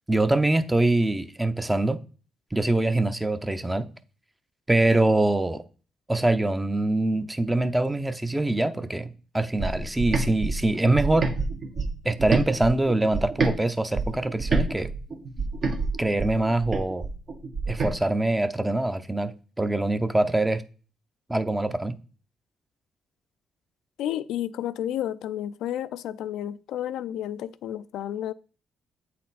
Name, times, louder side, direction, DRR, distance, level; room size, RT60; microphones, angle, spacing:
voice 1, 0.1-2.0 2.5-3.9 4.7-5.6 6.1-11.3 12.0-14.9 16.0-17.1 17.7-20.6 21.3-22.0, right 2 dB, 10° right, 0.6 m, -24 dB
sound 1, 9.6-13.6 13.9-17.9, right 3 dB, 55° right, 1.3 m, -28 dB
voice 2, 24.0-28.3, left 11 dB, 85° left, 0.3 m, -31 dB
8.3 x 4.2 x 4.0 m
cardioid pair, 90°, 0 cm